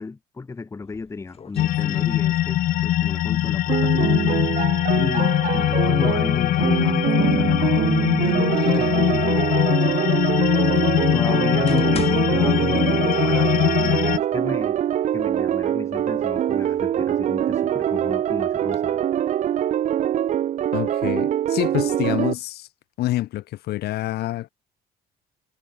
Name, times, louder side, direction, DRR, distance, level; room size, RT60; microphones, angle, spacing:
voice 1, 0.0-4.1 4.9-10.2 11.1-14.8 15.1-19.0, left 4 dB, 15° left, 0.8 m, -33 dB
sound 1, 0.8-2.7 3.0-4.4 5.5-7.6 8.1-9.1 9.8-9.9 10.6-10.7 11.3-13.3 13.6-13.7 14.5-14.6 14.9-15.6 16.1-17.8 18.4-18.8, left 7 dB, 35° left, 1.8 m, -42 dB
sound 2, 1.6-14.2, left 13 dB, 55° left, 0.5 m, -21 dB
sound 3, 3.7-22.3, right 11 dB, 45° right, 0.6 m, -24 dB
voice 2, 20.7-22.7 23.0-24.5, left 15 dB, 70° left, 1.0 m, -27 dB
cardioid pair, 110°, 17 cm